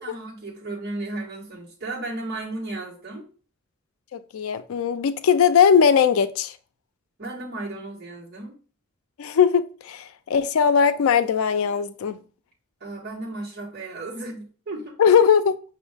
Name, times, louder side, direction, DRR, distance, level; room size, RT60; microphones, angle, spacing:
voice 1, 0.0-3.2 7.2-8.6 12.8-15.1, right 2 dB, 50° right, 1.4 m, -34 dB
voice 2, 4.1-6.5 9.2-12.2 15.0-15.5, left 7 dB, 80° left, 0.4 m, -19 dB
5.4 x 2.6 x 3.3 m
head